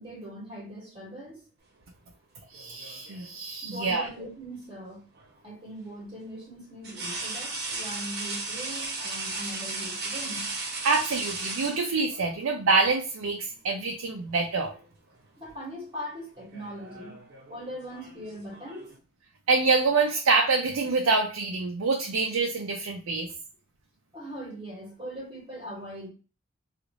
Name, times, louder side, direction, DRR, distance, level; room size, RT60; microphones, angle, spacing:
voice 1, 0.0-1.4 3.6-5.0 5.4-10.5 15.4-17.2 17.5-18.9 24.1-26.1, equal, 25° right, -4 dB, 1.4 m, -40 dB
sound 1, 2.5-3.4 5.1-5.3 6.8-12.3 13.5-13.7 14.1-14.9 15.1-15.5 16.4-19.0, right 3 dB, 55° right, 0.8 m, -36 dB
voice 2, 2.5-4.1 10.8-14.7 19.5-23.3, right 4 dB, 75° right, 2 dB, 0.5 m, -26 dB
3.0 x 2.5 x 3.7 m, 0.35 s
head